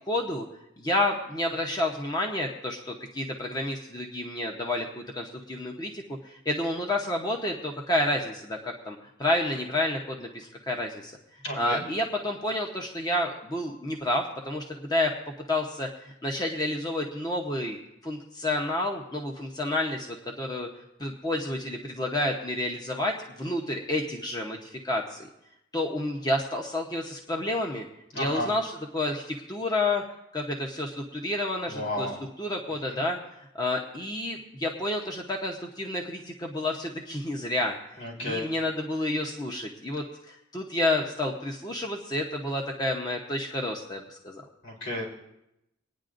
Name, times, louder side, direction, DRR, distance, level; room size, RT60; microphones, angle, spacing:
voice 1, 0.1-0.5 0.8-11.1 11.5-15.1 15.5-17.8 18.0-20.7 21.0-25.3 25.7-27.8 28.2-30.0 30.3-32.1 32.4-37.7 38.2-44.4, left 1 dB, 20° left, 1 dB, 0.9 m, -30 dB
voice 2, 11.4-11.8 28.1-28.5 31.7-32.2 32.9-33.0 38.0-38.5 44.6-45.0, left 1 dB, 75° left, -2 dB, 4.7 m, -32 dB
25.5 x 9.6 x 2.6 m, 0.85 s
head